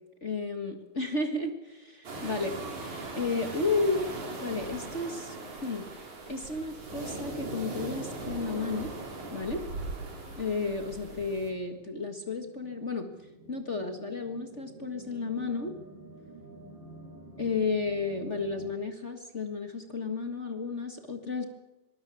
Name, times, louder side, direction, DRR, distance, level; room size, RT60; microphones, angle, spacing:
voice 1, 0.2-2.5 3.1-4.1 4.4-5.9 6.3-8.9 9.3-9.6 10.4-13.1 13.5-15.8 17.4-21.5, left 3 dB, 35° left, 5 dB, 1.2 m, -32 dB
sound 1, 2.0-11.5, right 3 dB, 60° right, 5.5 m, -40 dB
sound 2, 2.3-18.7, right 3 dB, 35° right, 7.4 m, -51 dB
24.0 x 20.0 x 7.1 m, 1.0 s
omnidirectional pair, 3.8 m